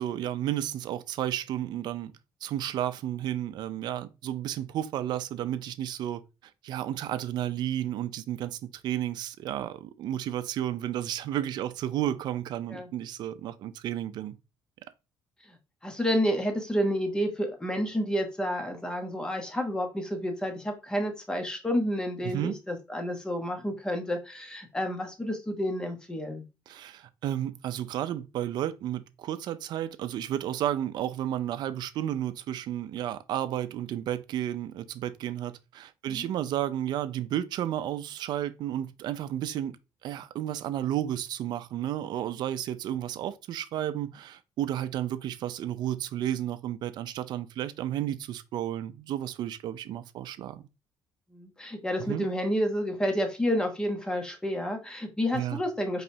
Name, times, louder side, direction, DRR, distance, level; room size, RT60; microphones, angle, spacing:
voice 1, 0.0-2.1 2.4-6.2 6.6-14.4 22.2-22.6 26.7-39.8 40.0-50.6 52.1-52.3 55.3-55.6, right 11 dB, 60° right, 0.4 m, -32 dB
voice 2, 15.8-26.5 36.1-36.3 51.3-56.0, equal, 10° left, 0.9 m, -30 dB
4.9 x 3.1 x 2.7 m
cardioid pair, 140°, 8 cm